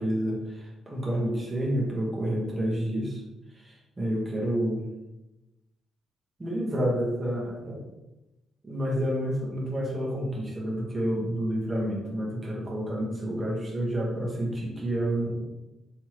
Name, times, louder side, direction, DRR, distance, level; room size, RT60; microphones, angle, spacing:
voice 1, 0.0-3.2 3.5-4.9 6.4-7.8 8.6-15.4, equal, 20° right, -4 dB, 1.3 m, -29 dB
4.5 x 3.3 x 3.1 m, 1.0 s
cardioid pair, 90°, 0 cm